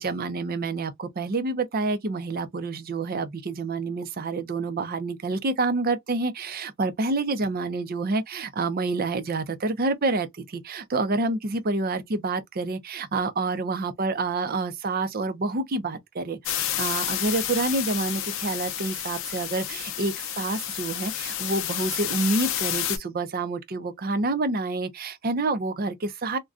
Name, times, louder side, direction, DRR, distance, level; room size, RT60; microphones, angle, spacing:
voice 1, 0.0-26.4, right 3 dB, 40° right, 0.5 m, -28 dB
sound 1, 16.5-23.0, left 11 dB, 60° left, 0.5 m, -30 dB
2.5 x 2.2 x 3.5 m
head